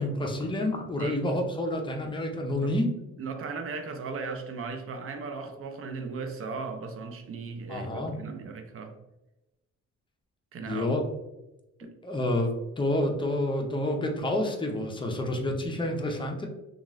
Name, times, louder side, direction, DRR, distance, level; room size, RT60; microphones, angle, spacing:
voice 1, 0.0-2.9 7.7-8.2 10.7-11.0 12.0-16.5, left 1 dB, 15° left, 0.5 m, -29 dB
voice 2, 3.2-8.9 10.5-10.9 11.8-11.9, right 4 dB, 50° right, 0.5 m, -37 dB
2.9 x 2.4 x 2.5 m
cardioid pair, 90°, 30 cm